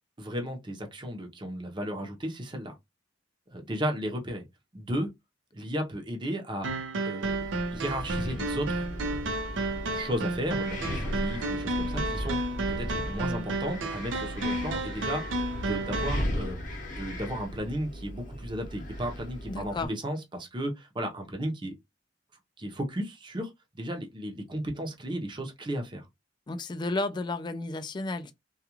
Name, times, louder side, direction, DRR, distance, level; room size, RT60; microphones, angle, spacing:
voice 1, 0.2-2.7 3.5-4.4 4.7-5.1 5.5-6.7 7.0-7.4 7.7-8.9 9.9-15.4 15.7-21.7 22.6-26.0, equal, 25° right, 0.7 m, -34 dB
sound 1, 6.6-16.2, right 2 dB, 85° right, 0.5 m, -32 dB
Wind, 7.2-19.9, equal, 45° left, 0.8 m, -37 dB
voice 2, 19.5-19.9 26.5-28.3, left 2 dB, 25° left, 0.3 m, -32 dB
2.3 x 2.3 x 2.9 m
head